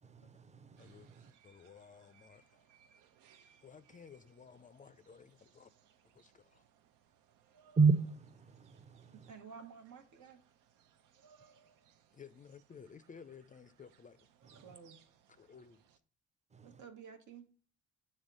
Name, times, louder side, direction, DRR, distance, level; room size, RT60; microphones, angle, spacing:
voice 1, 0.0-1.3 7.7-9.3 14.4-14.8 16.5-16.9, right 4 dB, 25° right, 0.6 m, -33 dB
voice 2, 0.8-1.1 1.4-2.7 3.6-5.7 6.0-6.7 12.1-14.3 15.4-15.8, left 6 dB, 25° left, 0.4 m, -56 dB
sound 1, 0.8-16.0, right 7 dB, 90° right, 0.6 m, -68 dB
voice 3, 9.1-10.4 14.6-15.0 16.6-17.5, right 6 dB, 75° right, 1.2 m, -52 dB
7.2 x 3.5 x 5.2 m
cardioid pair, 90°, 30 cm